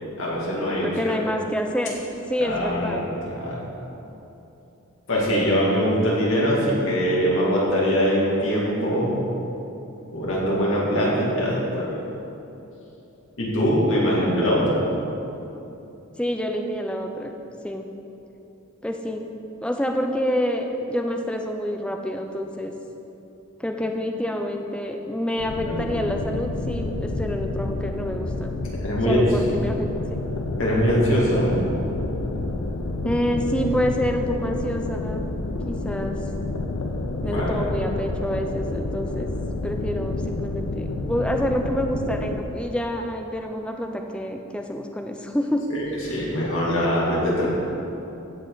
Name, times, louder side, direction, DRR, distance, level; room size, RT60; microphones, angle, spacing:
voice 1, 0.2-1.2 2.4-3.1 3.4-3.6 5.1-9.2 10.1-12.0 13.4-14.8 25.6-26.0 28.8-29.2 30.6-31.6 37.2-37.7 45.7-47.5, equal, 65° left, -6 dB, 2.4 m, -22 dB
voice 2, 0.8-2.0 2.3-3.1 16.2-17.3 17.6-17.9 18.8-19.3 19.6-22.7 23.6-28.6 29.0-30.2 33.0-35.3 35.6-36.2 37.2-39.3 39.6-45.6, equal, 5° left, 3 dB, 0.5 m, -27 dB
sound 1, 25.4-42.4, left 2 dB, 85° left, 0.6 m, -29 dB
16.0 x 5.3 x 4.0 m, 3.0 s
head